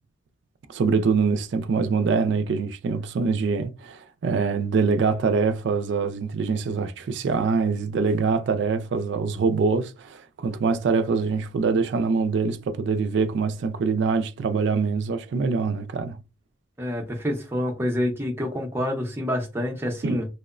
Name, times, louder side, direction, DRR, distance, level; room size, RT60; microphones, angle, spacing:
voice 1, 0.7-16.2 20.0-20.2, right 5 dB, 60° right, 0.3 m, -24 dB
voice 2, 16.8-20.3, left 1 dB, 10° right, 0.6 m, -27 dB
2.8 x 2.0 x 2.3 m
head